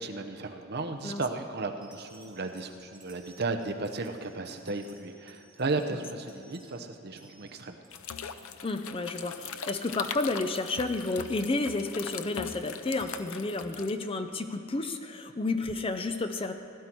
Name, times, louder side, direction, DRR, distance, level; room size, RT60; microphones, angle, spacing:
voice 1, 0.0-7.8, right 3 dB, 50° right, 5 dB, 0.8 m, -34 dB
sound 1, 1.0-1.2 1.8-8.0 8.3-8.6 8.9-9.0 9.2-9.4 9.7-9.9 10.3-11.9 12.5-13.2 14.0-14.1, right 2 dB, 5° right, 2.1 m, -59 dB
sound 2, 7.9-13.9, left 7 dB, 80° left, 0.6 m, -40 dB
voice 2, 8.6-16.5, left 2 dB, 25° left, 7 dB, 0.5 m, -31 dB
16.5 x 11.5 x 4.6 m, 2.9 s
head